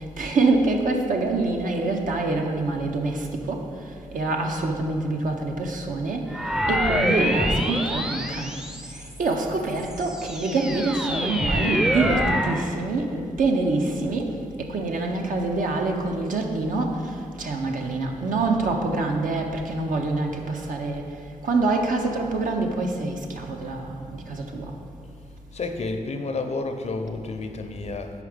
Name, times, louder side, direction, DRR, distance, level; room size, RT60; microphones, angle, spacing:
voice 1, 0.0-8.5 8.9-21.1 21.4-24.7, right 3 dB, 70° right, 2 dB, 0.7 m, -26 dB
sound 1, 6.3-9.2 9.8-12.7, equal, 5° right, 0.5 m, -26 dB
voice 2, 25.5-28.1, left 3 dB, 50° left, 6 dB, 0.6 m, -30 dB
5.0 x 4.8 x 5.0 m, 2.3 s
supercardioid pair, 45°, 14 cm